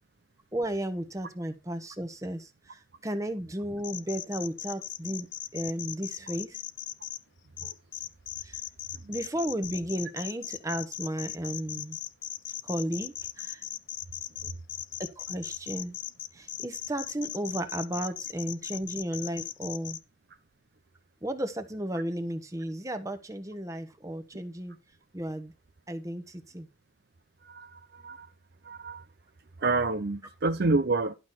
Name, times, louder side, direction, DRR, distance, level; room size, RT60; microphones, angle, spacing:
voice 1, 0.5-5.3 5.5-6.6 8.4-8.6 9.1-12.0 12.6-13.6 15.0-16.0 16.3-20.0 21.2-24.8 25.1-25.5 25.9-26.7 28.0-28.2, right 1 dB, 15° right, 1.2 m, -34 dB
sound 1, 3.8-7.2 7.6-20.0, left 12 dB, 60° left, 0.7 m, -38 dB
voice 2, 27.4-28.3 28.6-29.0 29.6-31.1, right 3 dB, 50° right, 0.6 m, -28 dB
12.0 x 6.3 x 4.2 m
head